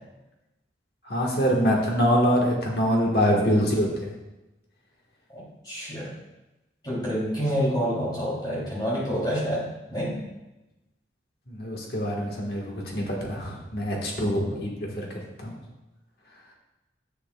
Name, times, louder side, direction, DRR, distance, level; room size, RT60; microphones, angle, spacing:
voice 1, 1.0-4.1 11.5-15.1 15.4-15.5, equal, 55° left, -2 dB, 1.5 m, -24 dB
voice 2, 5.3-6.1 6.8-9.6 9.9-10.2, equal, 20° left, -7 dB, 3.1 m, -28 dB
10.0 x 8.0 x 2.3 m, 1.0 s
head